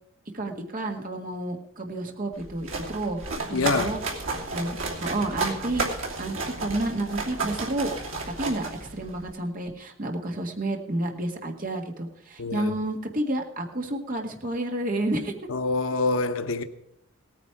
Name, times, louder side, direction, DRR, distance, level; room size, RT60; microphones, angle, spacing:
voice 1, 0.3-3.2 3.5-4.0 4.5-5.8 6.2-7.9 8.4-15.3, right 1 dB, 45° right, 1.8 m, -30 dB
sound 1, 2.3-9.3, right 3 dB, 75° right, 2.8 m, -32 dB
voice 2, 3.5-3.9 12.4-12.7 15.5-16.6, left 3 dB, 80° left, 0.9 m, -26 dB
17.5 x 9.5 x 4.7 m
head